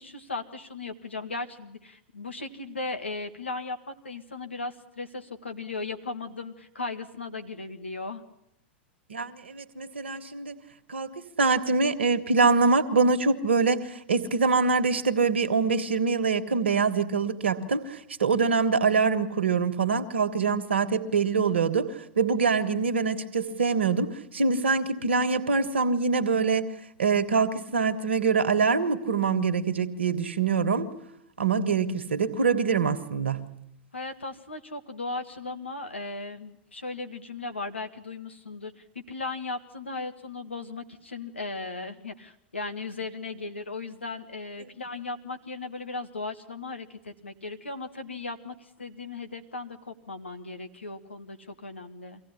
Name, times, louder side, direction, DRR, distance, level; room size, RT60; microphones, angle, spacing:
voice 1, 0.0-8.2 33.9-52.2, left 3 dB, 85° left, 1.8 m, -37 dB
voice 2, 9.1-10.5 10.9-21.9 22.2-26.7 27.0-30.9 31.4-33.5, right 4 dB, 80° right, 1.5 m, -24 dB
24.0 x 16.0 x 9.9 m
figure-of-eight pair, 95°, 6 cm